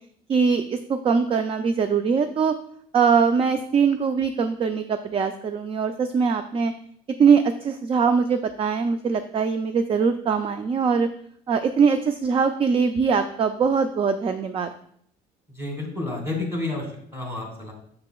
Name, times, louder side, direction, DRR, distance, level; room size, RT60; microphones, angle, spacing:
voice 1, 0.3-2.5 2.9-6.7 7.2-11.1 11.5-14.7, right 6 dB, 35° right, 9 dB, 0.4 m, -22 dB
voice 2, 15.5-16.9 17.1-17.7, left 2 dB, 15° right, 0 dB, 2.2 m, -30 dB
6.7 x 6.7 x 2.3 m, 0.65 s
cardioid pair, 110°, 17 cm